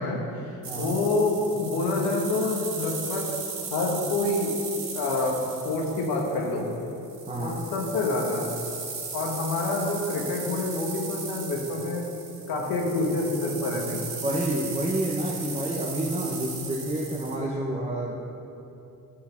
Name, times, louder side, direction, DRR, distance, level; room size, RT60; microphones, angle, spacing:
voice 1, 0.0-3.2 3.7-4.5 4.9-6.7 7.4-8.5 9.1-12.0 12.5-14.0, left 2 dB, 90° left, 0 dB, 1.4 m, -27 dB
sound 1, 0.6-17.4, right 5 dB, 70° right, 2.1 m, -37 dB
voice 2, 7.3-7.6 14.2-18.2, right 1 dB, 15° right, -4 dB, 0.9 m, -29 dB
11.0 x 4.0 x 5.8 m, 2.9 s
cardioid pair, 90°, 36 cm